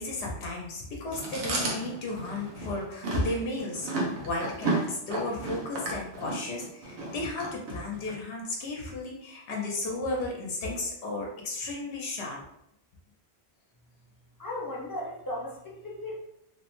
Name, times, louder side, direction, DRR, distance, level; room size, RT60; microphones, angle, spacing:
voice 1, 0.0-12.4, left 2 dB, 75° left, -1 dB, 0.9 m, -34 dB
Chewing mastication, 1.1-8.2, right 2 dB, 90° right, 1.0 m, -33 dB
voice 2, 14.4-16.2, left 1 dB, 25° left, -4 dB, 0.6 m, -36 dB
2.9 x 2.0 x 2.9 m, 0.79 s
omnidirectional pair, 1.1 m